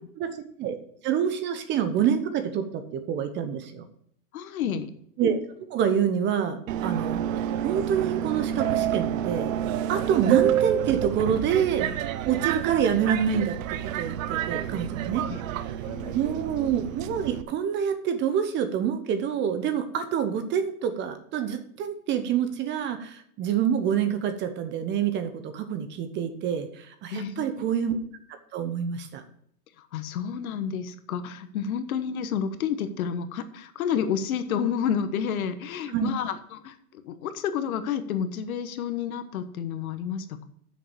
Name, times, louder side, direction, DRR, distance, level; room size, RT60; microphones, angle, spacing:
voice 1, 0.2-0.8 1.0-3.8 5.2-5.4 5.7-7.2 7.6-9.5 9.9-11.9 12.3-13.6 13.9-15.3 16.1-28.0 28.5-29.2 35.9-36.1, right 8 dB, 25° right, 9 dB, 0.9 m, -27 dB
voice 2, 4.3-4.9 15.3-16.4 27.1-27.7 29.8-40.5, left 8 dB, 65° left, 10 dB, 1.3 m, -30 dB
Subway metro underground, 6.7-17.4, right 10 dB, 60° right, 0.8 m, -29 dB
7.7 x 6.8 x 6.8 m, 0.65 s
hypercardioid pair, 140°, 45 cm